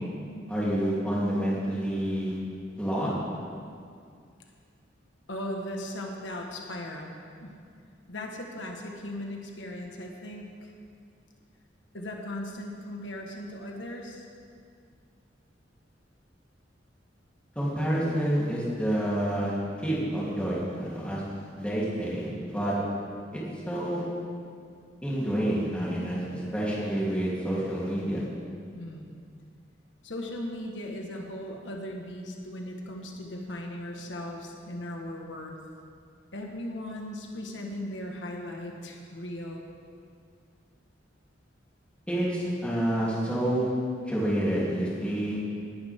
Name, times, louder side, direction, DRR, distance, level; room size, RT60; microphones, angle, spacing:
voice 1, 0.5-2.4 2.8-3.1 17.5-21.2 21.6-22.8 23.3-23.4 23.7-24.0 25.0-28.2 42.1-43.7 44.1-45.4, right 1 dB, 5° left, -8 dB, 3.4 m, -28 dB
voice 2, 5.3-7.1 7.4-7.5 8.1-10.7 11.9-14.2 28.7-29.1 30.0-35.6 36.3-39.6, left 1 dB, 85° left, 1 dB, 1.5 m, -38 dB
19.5 x 11.0 x 3.7 m, 2.3 s
head